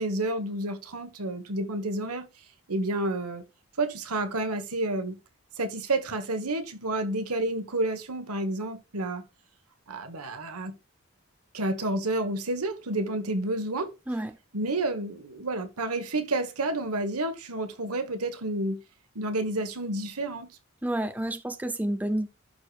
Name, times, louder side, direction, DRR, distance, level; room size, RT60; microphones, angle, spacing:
voice 1, 0.0-2.3 2.7-3.4 3.8-5.2 5.6-9.2 9.9-10.7 11.5-13.9 14.5-18.8 19.1-20.6, right 2 dB, 90° right, 1.4 m, -30 dB
voice 2, 20.8-22.3, right 1 dB, 5° right, 0.5 m, -29 dB
12.0 x 4.8 x 2.4 m
head